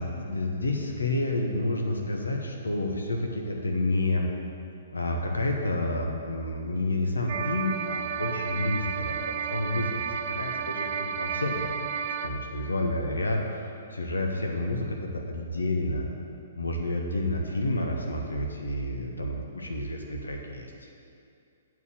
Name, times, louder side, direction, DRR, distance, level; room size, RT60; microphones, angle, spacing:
voice 1, 0.0-4.3 4.9-11.9 12.2-13.4 13.9-16.1 16.6-20.9, left 1 dB, 75° left, 1 dB, 1.0 m, -29 dB
sound 1, 7.3-12.3, right 7 dB, 45° right, 0.5 m, -32 dB
8.2 x 4.8 x 7.4 m, 2.6 s
figure-of-eight pair, 120°, 0 cm